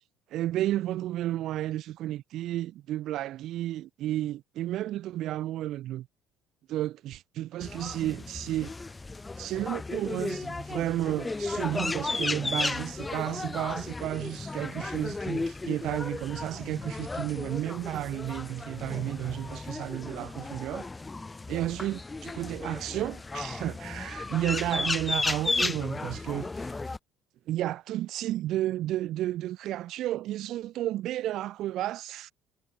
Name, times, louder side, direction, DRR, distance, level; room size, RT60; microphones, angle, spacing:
voice 1, 0.3-6.1 6.7-8.7 9.4-20.9 21.5-26.7 27.5-32.3, right 14 dB, 55° right, 3.1 m, -32 dB
sound 1, 7.6-27.0, left 3 dB, 20° left, 3.8 m, -34 dB
figure-of-eight pair, 55°, 0 cm